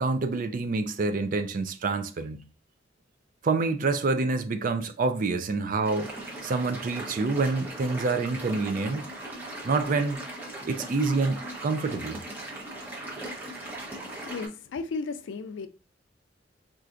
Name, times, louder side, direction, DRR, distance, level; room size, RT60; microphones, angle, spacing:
voice 1, 0.0-2.4 3.4-6.1 6.4-9.1 9.6-10.2 10.6-12.2, right 3 dB, 45° right, 0.4 m, -27 dB
sound 1, 5.8-14.5, right 1 dB, 10° right, 0.8 m, -39 dB
voice 2, 13.7-15.7, left 4 dB, 85° left, 0.4 m, -36 dB
4.3 x 2.5 x 2.5 m
head